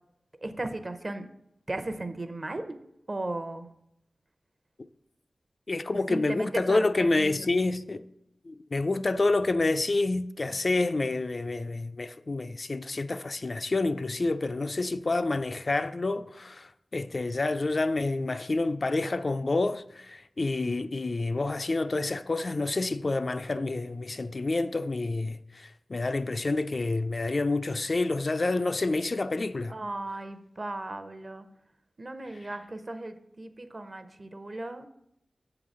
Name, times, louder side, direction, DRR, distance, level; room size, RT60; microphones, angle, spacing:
voice 1, 0.4-1.3 1.7-2.6 3.1-3.7 6.1-6.8 7.2-7.5 29.7-31.5 32.0-34.9, right 2 dB, 40° right, 0.7 m, -36 dB
voice 2, 5.7-8.1 8.5-29.7, left 2 dB, 50° left, 0.3 m, -28 dB
6.7 x 3.9 x 6.1 m
wide cardioid pair, 55°, 0 cm